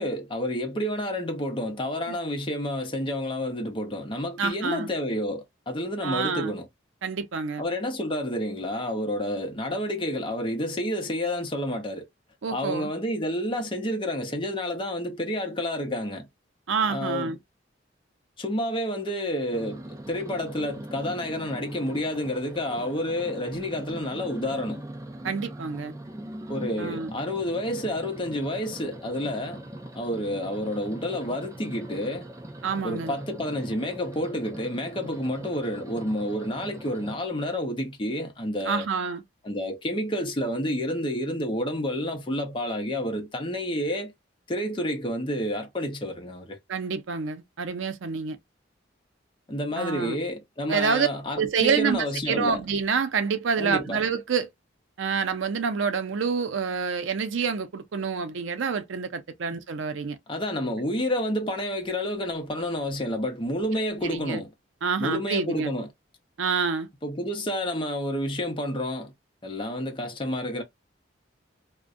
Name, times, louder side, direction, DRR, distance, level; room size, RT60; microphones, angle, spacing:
voice 1, 0.0-6.7 7.6-12.1 12.5-16.3 16.9-17.4 18.4-24.8 26.5-29.6 29.9-32.3 32.8-38.9 39.4-44.1 44.5-46.6 49.5-52.6 53.6-54.0 60.3-64.5 65.0-65.9 67.0-69.1 69.4-70.6, left 1 dB, 25° left, 0.6 m, -29 dB
voice 2, 4.4-4.9 6.0-6.5 7.0-7.6 12.4-12.9 16.7-17.4 25.2-25.9 26.8-27.1 32.6-33.1 38.6-39.2 46.7-48.4 49.8-50.2 50.7-51.1 51.4-54.5 55.0-60.2 64.0-64.4 64.8-65.7 66.4-66.9, right 5 dB, 85° right, 0.5 m, -27 dB
sound 1, 19.5-37.2, right 1 dB, 15° right, 0.3 m, -41 dB
2.6 x 2.1 x 2.4 m
head